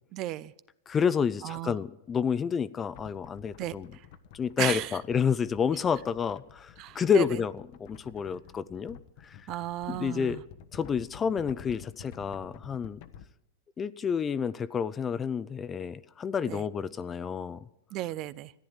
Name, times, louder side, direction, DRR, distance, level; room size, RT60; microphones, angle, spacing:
voice 1, 0.1-0.5 1.4-1.8 3.6-3.7 4.6-5.0 6.8-7.2 9.5-10.4 16.5-16.6 17.9-18.5, right 15 dB, 40° right, 18 dB, 0.5 m, -34 dB
voice 2, 0.9-3.9 4.3-9.0 9.2-9.4 9.9-10.4 10.7-13.0 13.8-17.6, left 6 dB, 20° left, 17 dB, 0.5 m, -29 dB
sound 1, 2.9-13.2, left 7 dB, 55° left, 1.0 m, -50 dB
14.0 x 9.8 x 8.9 m, 0.85 s
hypercardioid pair, 125°, 0 cm